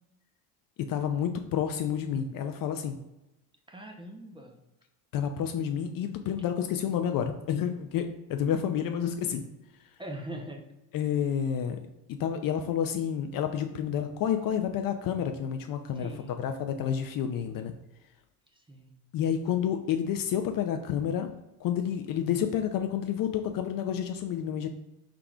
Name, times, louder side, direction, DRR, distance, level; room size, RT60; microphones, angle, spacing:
voice 1, 0.9-3.0 5.1-9.4 10.9-11.8 12.2-16.1 16.4-17.7 19.1-24.7, left 8 dB, 45° left, 6 dB, 0.5 m, -29 dB
voice 2, 3.7-4.6 10.0-10.6 15.9-16.4 18.5-18.9, right 1 dB, 10° right, 2 dB, 0.6 m, -41 dB
4.7 x 3.6 x 2.3 m, 0.95 s
hypercardioid pair, 75°, 50 cm